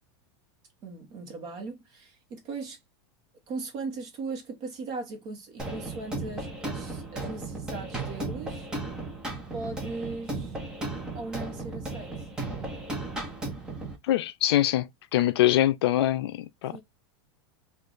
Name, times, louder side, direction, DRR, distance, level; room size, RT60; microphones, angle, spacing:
voice 1, 0.8-2.8 3.5-8.7 9.5-10.5 11.1-12.1 16.7-16.8, right 3 dB, 30° right, 1.0 m, -38 dB
sound 1, 5.6-14.0, right 2 dB, 5° right, 0.6 m, -35 dB
voice 2, 14.1-16.8, left 13 dB, 75° left, 0.4 m, -24 dB
3.1 x 2.4 x 3.8 m
supercardioid pair, 175°, 13 cm